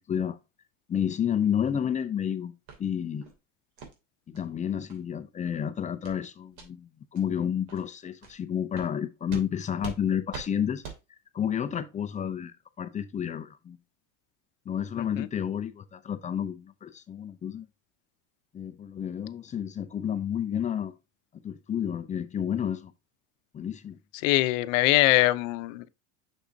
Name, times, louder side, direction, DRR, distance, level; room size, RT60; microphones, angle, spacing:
voice 1, 0.9-2.5 2.8-3.3 4.3-10.8 11.3-12.5 12.8-13.8 14.7-17.7 18.5-20.9 21.4-22.9 23.5-24.0, left 9 dB, 20° left, 0.5 m, -30 dB
sound 1, 2.7-2.8 3.2-3.4 3.8-3.9 4.3-4.5 4.9-5.0 5.4-5.6 6.0-6.2 6.5-6.7 7.1-7.2 7.7-7.8 8.2-8.3 8.7-8.9 9.3-9.5 9.8-10.0 10.3-10.5 10.8-11.0, right 6 dB, 65° right, 2.8 m, -42 dB
voice 2, 15.0-15.3 24.2-25.9, left 18 dB, 80° left, 0.7 m, -23 dB
6.6 x 6.3 x 2.7 m
cardioid pair, 140°, 38 cm